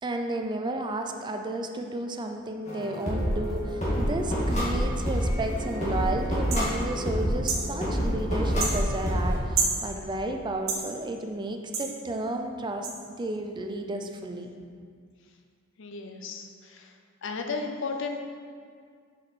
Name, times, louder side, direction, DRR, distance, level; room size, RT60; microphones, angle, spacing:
voice 1, 0.0-14.5, right 2 dB, 20° right, 4 dB, 0.4 m, -32 dB
sound 1, 2.7-9.4, equal, 35° left, 1.9 m, -27 dB
sound 2, 6.5-6.7 7.5-7.7 8.6-8.8 9.6-9.8 10.7-10.8 11.7-11.9 12.8-12.9, right 5 dB, 85° right, 1.2 m, -27 dB
voice 2, 15.8-16.9 17.2-18.2, left 4 dB, 65° left, 4 dB, 0.6 m, -34 dB
6.7 x 5.3 x 4.1 m, 2.1 s
head